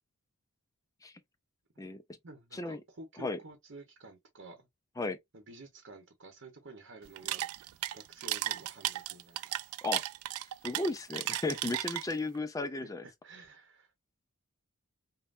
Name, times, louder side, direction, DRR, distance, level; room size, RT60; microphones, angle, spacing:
voice 1, 2.2-4.7 5.3-7.5 7.9-9.7 12.7-13.9, right 2 dB, 55° right, 0.9 m, -51 dB
sound 1, 7.0-12.4, right 14 dB, 75° right, 0.3 m, -35 dB
voice 2, 10.6-13.0, left 2 dB, 15° left, 0.3 m, -34 dB
5.3 x 2.2 x 2.5 m
head